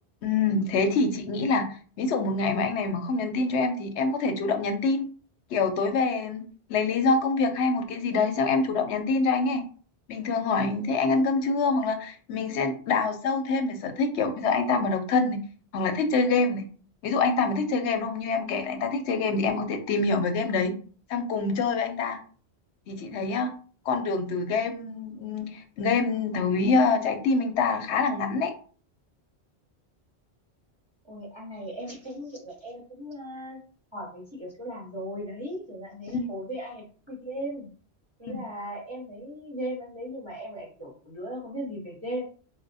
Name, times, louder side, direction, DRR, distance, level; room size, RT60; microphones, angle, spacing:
voice 1, 0.2-5.1 5.5-6.4 6.7-9.6 10.1-15.4 15.7-16.6 17.0-20.7 21.1-22.2 22.9-23.5 23.9-28.5 36.1-36.3 38.2-38.3, left 4 dB, 85° left, 7 dB, 0.9 m, -25 dB
voice 2, 31.0-33.6 33.9-37.7 38.2-42.2, equal, 30° right, -2 dB, 0.7 m, -37 dB
4.2 x 2.1 x 2.6 m, 0.41 s
omnidirectional pair, 1.1 m